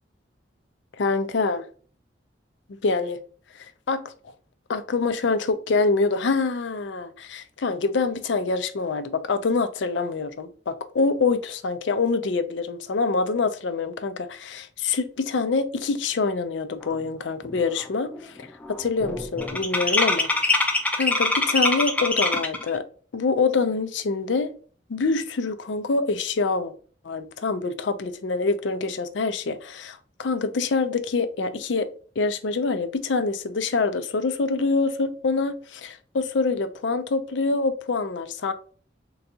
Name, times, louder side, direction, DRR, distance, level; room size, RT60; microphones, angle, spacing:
voice 1, 1.0-1.7 2.8-3.2 3.5-4.1 4.7-20.3 21.0-22.8 23.1-24.5 24.9-26.7 27.0-31.9 32.2-38.5, left 4 dB, 85° left, 0.5 m, -25 dB
sound 1, 17.0-17.1 17.4-17.8 18.1-22.7, left 2 dB, 10° left, 0.4 m, -24 dB
3.9 x 2.3 x 2.7 m
head